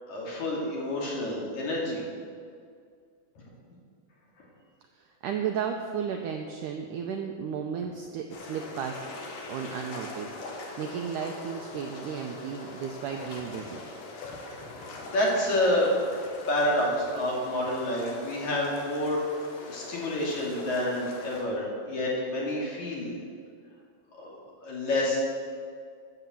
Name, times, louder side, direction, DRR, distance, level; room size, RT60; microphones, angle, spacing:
voice 1, 0.1-2.0 3.4-3.5 14.4-14.7 15.0-15.9 16.5-23.1 24.2-24.3 24.6-25.2, left 1 dB, 50° left, -4 dB, 3.6 m, -28 dB
voice 2, 5.0-9.0 9.5-13.8, right 7 dB, 80° right, 3 dB, 1.9 m, -34 dB
sound 1, 8.3-21.4, left 2 dB, 70° left, 3.1 m, -42 dB
13.5 x 6.9 x 7.6 m, 2.2 s
omnidirectional pair, 4.4 m